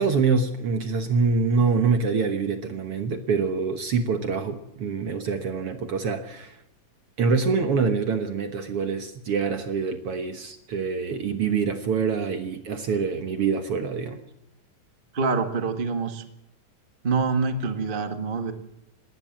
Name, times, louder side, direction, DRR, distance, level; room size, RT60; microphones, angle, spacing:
voice 1, 0.0-6.6 7.2-14.2, right 5 dB, 55° right, 8 dB, 1.7 m, -25 dB
voice 2, 15.1-16.2 17.0-18.5, right 4 dB, 30° right, 7 dB, 0.9 m, -26 dB
19.5 x 18.5 x 7.6 m, 0.81 s
omnidirectional pair, 3.9 m